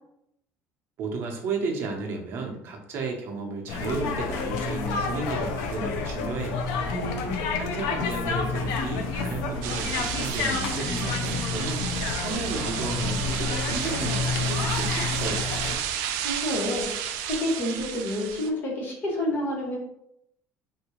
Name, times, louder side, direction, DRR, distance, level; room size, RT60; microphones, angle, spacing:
voice 1, 1.0-6.8 7.6-15.5, right 4 dB, 45° right, 1 dB, 0.7 m, -33 dB
sound 1, 3.7-15.8, left 4 dB, 80° left, 0.5 m, -29 dB
voice 2, 6.9-7.4 16.2-19.8, left 1 dB, 35° left, -2 dB, 0.9 m, -29 dB
sound 2, 9.6-18.5, right 9 dB, 85° right, 0.4 m, -32 dB
3.5 x 2.7 x 3.0 m, 0.77 s
cardioid pair, 165°, 6 cm